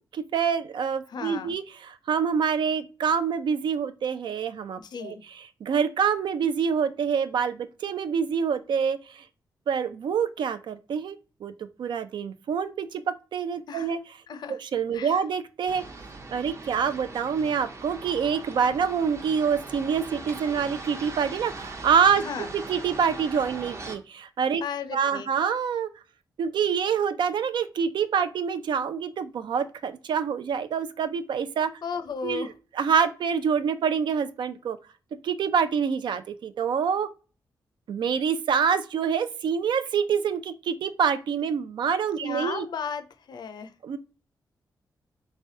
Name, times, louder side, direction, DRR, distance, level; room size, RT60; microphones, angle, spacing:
voice 1, 0.1-5.1 5.6-9.2 9.7-14.0 14.5-15.8 16.3-22.2 22.5-24.6 24.9-25.9 26.4-31.7 32.2-32.5 32.7-34.8 35.2-37.1 37.9-42.7 43.8-44.0, right 7 dB, 80° right, 0.4 m, -26 dB
voice 2, 1.1-1.6 4.8-5.2 13.7-13.9 14.3-14.6 14.9-15.2 22.2-22.5 24.6-25.3 31.8-32.5 42.2-43.7, left 6 dB, 65° left, 0.5 m, -35 dB
sound 1, 15.7-24.0, right 3 dB, 40° right, 0.7 m, -40 dB
3.5 x 3.3 x 2.7 m
wide cardioid pair, 120°, 8 cm